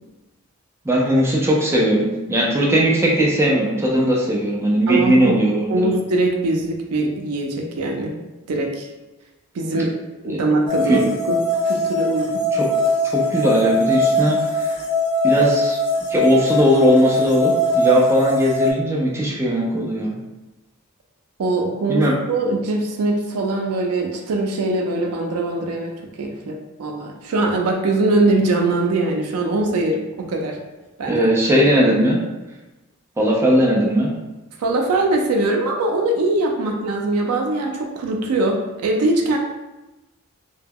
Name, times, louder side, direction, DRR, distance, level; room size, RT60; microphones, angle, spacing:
voice 1, 0.9-5.9 10.2-10.4 10.9-11.0 12.5-12.7 13.1-14.4 15.2-15.8 16.1-20.1 21.9-22.1 31.1-32.2 33.2-34.1, equal, 10° right, -4 dB, 0.4 m, -18 dB
voice 2, 4.9-5.4 5.7-8.1 8.5-8.9 9.5-11.4 11.7-12.4 21.4-25.9 26.2-30.6 31.0-31.2 31.5-31.6 34.6-39.4, right 2 dB, 80° right, 2 dB, 0.4 m, -22 dB
sound 1, 10.7-18.7, equal, 80° left, 0.5 m, -21 dB
2.2 x 2.1 x 3.4 m, 1.1 s
head